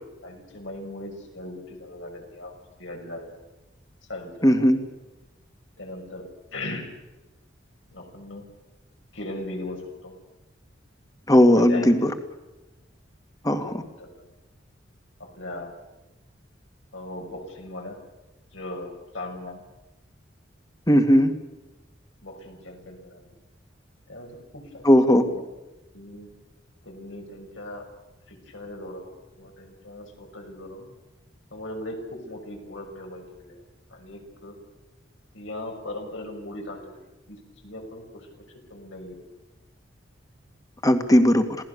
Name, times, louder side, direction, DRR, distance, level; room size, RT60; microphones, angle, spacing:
voice 1, 0.2-2.5 2.8-3.3 4.1-4.7 5.8-6.3 6.5-6.9 7.9-8.5 9.1-10.1 11.5-12.1 13.6-14.3 15.2-15.7 16.9-18.0 18.5-19.6 22.2-23.3 24.1-25.0 25.3-25.4 25.9-26.3 26.8-27.9 28.3-30.9 31.5-33.6 33.9-34.6 35.3-39.3, left 1 dB, 80° left, 2 dB, 6.3 m, -39 dB
voice 2, 4.4-4.8 11.3-12.1 13.4-13.8 20.9-21.3 24.9-25.2 40.8-41.5, equal, 20° left, 8 dB, 2.0 m, -17 dB
27.5 x 18.0 x 6.9 m, 1.1 s
head